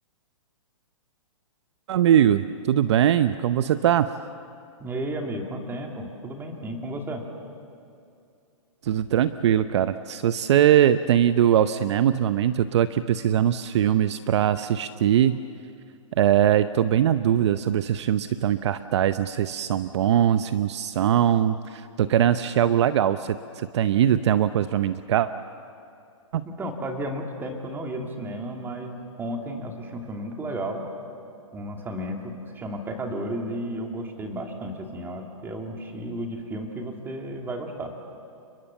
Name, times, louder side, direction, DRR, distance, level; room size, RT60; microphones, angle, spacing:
voice 1, 1.9-4.1 8.8-15.4 16.2-25.3 26.3-26.4, right 10 dB, 55° right, 12 dB, 0.8 m, -21 dB
voice 2, 4.8-7.2 26.4-30.8 31.5-37.9, right 1 dB, 10° right, 2 dB, 2.8 m, -33 dB
30.0 x 21.5 x 7.2 m, 2.6 s
hypercardioid pair, 145°, 17 cm